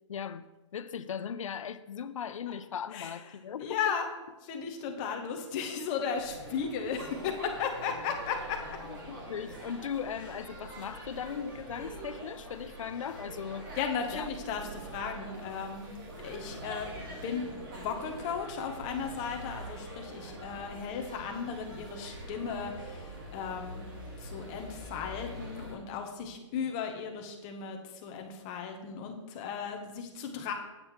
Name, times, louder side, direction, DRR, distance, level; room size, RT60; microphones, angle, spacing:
voice 1, 0.1-0.4 0.7-3.8 8.9-13.7 14.1-14.3, left 7 dB, 80° left, 0.6 m, -38 dB
voice 2, 3.6-4.1 4.4-8.8 13.8-15.9 16.2-23.9 24.2-30.5, left 6 dB, 10° left, 0.4 m, -36 dB
sound 1, 6.1-25.7, right 1 dB, 40° right, 2.1 m, -44 dB
7.9 x 7.5 x 4.4 m
hypercardioid pair, 180°, 16 cm